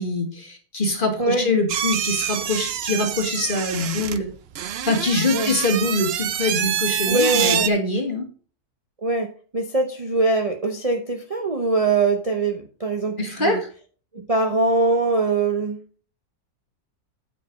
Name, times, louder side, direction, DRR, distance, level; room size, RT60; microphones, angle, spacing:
voice 1, 0.0-4.3 4.8-8.3 13.2-13.6, left 2 dB, 35° left, 4 dB, 1.8 m, -24 dB
voice 2, 1.2-1.5 5.3-5.5 7.1-7.7 9.0-13.6 14.1-15.8, right 3 dB, 30° right, 3 dB, 0.8 m, -22 dB
sound 1, 1.7-7.7, right 10 dB, 65° right, 0.6 m, -26 dB
9.2 x 5.4 x 5.1 m, 0.39 s
omnidirectional pair, 1.6 m